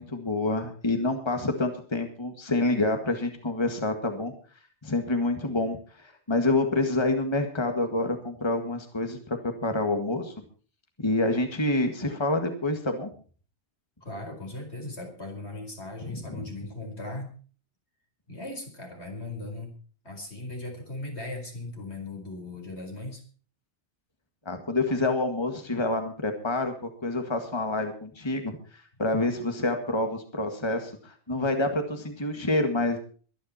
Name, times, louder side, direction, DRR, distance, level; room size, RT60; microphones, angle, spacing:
voice 1, 0.0-4.3 4.8-10.3 11.0-13.1 16.3-16.4 24.5-33.0, left 2 dB, 25° left, 5 dB, 1.9 m, -27 dB
voice 2, 14.0-17.3 18.3-19.7 20.0-23.2, left 2 dB, 70° left, 2 dB, 4.8 m, -38 dB
23.0 x 10.5 x 4.3 m, 0.41 s
omnidirectional pair, 1.2 m